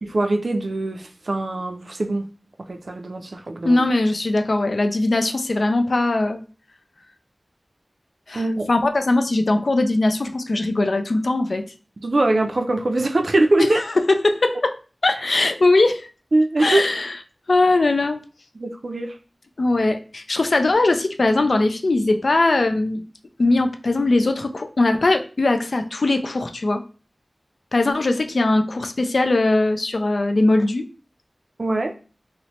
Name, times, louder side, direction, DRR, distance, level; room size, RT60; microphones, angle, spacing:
voice 1, 0.0-2.3 2.7-3.8 8.3-8.7 12.0-13.8 16.3-16.8 18.6-19.1 31.6-32.0, right 2 dB, 70° right, 0.3 m, -22 dB
voice 2, 3.6-6.4 8.3-11.6 13.6-14.7 15.0-16.1 16.6-17.2 17.5-18.2 19.6-23.0 23.4-26.8 27.7-30.8, left 2 dB, 85° left, 0.3 m, -20 dB
2.9 x 2.0 x 4.0 m
wide cardioid pair, 65°, 0 cm